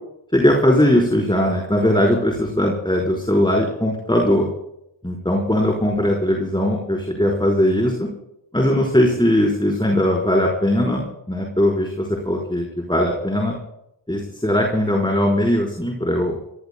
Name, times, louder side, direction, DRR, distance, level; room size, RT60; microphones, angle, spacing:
voice 1, 0.3-4.5 5.0-8.1 8.5-13.5 14.1-16.4, left 1 dB, 10° left, -1 dB, 4.5 m, -19 dB
29.0 x 19.0 x 2.3 m, 0.82 s
cardioid pair, 45°, 46 cm